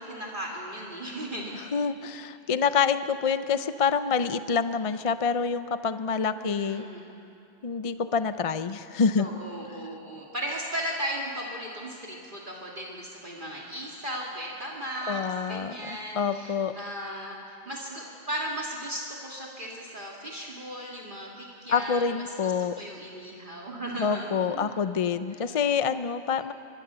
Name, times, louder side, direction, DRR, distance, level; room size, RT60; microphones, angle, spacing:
voice 1, 0.0-1.5 6.3-7.1 9.2-15.2 15.5-22.5 22.8-24.8 25.5-25.6, right 1 dB, 45° right, -3 dB, 2.5 m, -36 dB
voice 2, 1.5-6.8 7.6-9.3 15.1-16.7 21.7-22.7 24.0-26.5, left 6 dB, 40° left, 11 dB, 0.5 m, -27 dB
25.5 x 22.5 x 6.9 m, 2.7 s
omnidirectional pair, 1.2 m